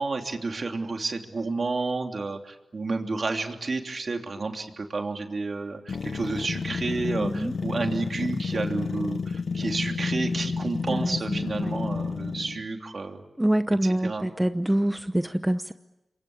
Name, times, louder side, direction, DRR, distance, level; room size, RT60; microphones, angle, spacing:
voice 1, 0.0-13.2 13.8-14.3, right 3 dB, 55° right, 4 dB, 3.1 m, -31 dB
sound 1, 5.9-12.7, left 5 dB, 70° left, 0.9 m, -30 dB
voice 2, 7.2-7.5 10.9-11.7 13.4-15.7, right 1 dB, 10° right, 10 dB, 0.9 m, -26 dB
27.5 x 23.5 x 8.7 m, 0.97 s
cardioid pair, 55°, 0 cm